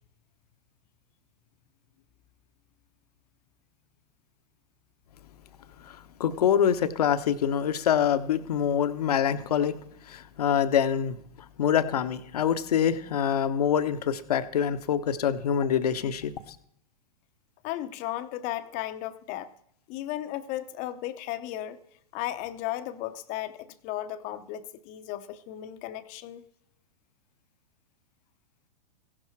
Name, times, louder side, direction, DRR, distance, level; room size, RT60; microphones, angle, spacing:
voice 1, 5.8-9.8 10.1-11.2 11.6-16.3, left 8 dB, 65° left, 11 dB, 1.0 m, -25 dB
voice 2, 17.6-19.5 19.9-21.8 22.1-26.4, left 13 dB, 35° left, 12 dB, 0.8 m, -35 dB
16.0 x 11.0 x 4.6 m, 0.72 s
figure-of-eight pair, 105°, 21 cm